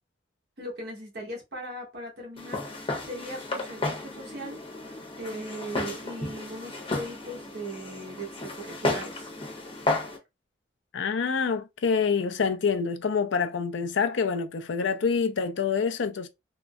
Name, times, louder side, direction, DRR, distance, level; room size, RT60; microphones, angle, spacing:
voice 1, 0.6-4.6 5.2-9.3, right 1 dB, 60° right, 1.2 m, -38 dB
Walk footsteps, 2.4-10.2, left 2 dB, 30° left, 0.9 m, -33 dB
voice 2, 10.9-16.3, left 5 dB, 90° left, 0.4 m, -26 dB
3.6 x 2.0 x 2.2 m
head